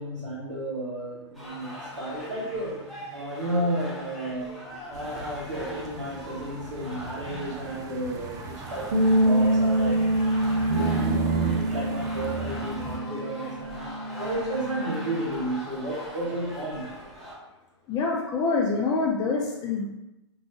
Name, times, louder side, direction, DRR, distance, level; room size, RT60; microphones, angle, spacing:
voice 1, 0.0-2.8 3.1-4.5 4.9-10.3 11.5-16.9, right 1 dB, 85° right, -4 dB, 1.4 m, -32 dB
sound 1, 1.3-17.4, left 1 dB, ahead, 1.0 m, -41 dB
sound 2, 4.9-13.0, right 5 dB, 25° right, 0.4 m, -34 dB
sound 3, 8.9-15.2, right 1 dB, 70° right, 1.1 m, -26 dB
voice 2, 17.9-19.9, left 4 dB, 25° left, -2 dB, 0.6 m, -26 dB
4.4 x 3.0 x 2.7 m, 0.95 s
figure-of-eight pair, 105°, 15 cm